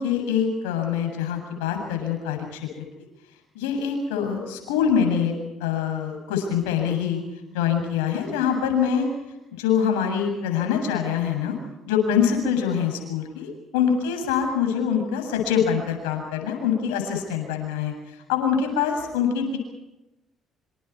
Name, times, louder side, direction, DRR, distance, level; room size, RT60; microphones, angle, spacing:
voice 1, 0.0-2.8 3.5-7.2 7.5-9.1 9.5-11.6 11.9-19.6, left 7 dB, 90° left, 3 dB, 7.6 m, -24 dB
27.5 x 27.0 x 4.8 m, 1.0 s
hypercardioid pair, 60°, 0 cm